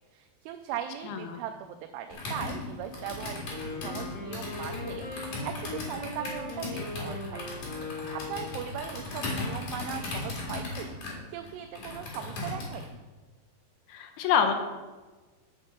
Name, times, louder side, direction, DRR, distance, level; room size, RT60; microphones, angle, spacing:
voice 1, 0.1-7.4 7.9-10.9 11.3-13.0, right 10 dB, 80° right, 6 dB, 2.5 m, -39 dB
voice 2, 1.0-1.4 13.9-14.5, left 7 dB, 80° left, 6 dB, 2.6 m, -26 dB
Computer keyboard, 2.1-12.9, left 2 dB, 50° left, 3.2 m, -37 dB
Wind instrument woodwind instrument, 3.4-8.6, left 3 dB, 35° left, 2.3 m, -39 dB
9.0 x 6.6 x 5.6 m, 1.3 s
omnidirectional pair, 4.9 m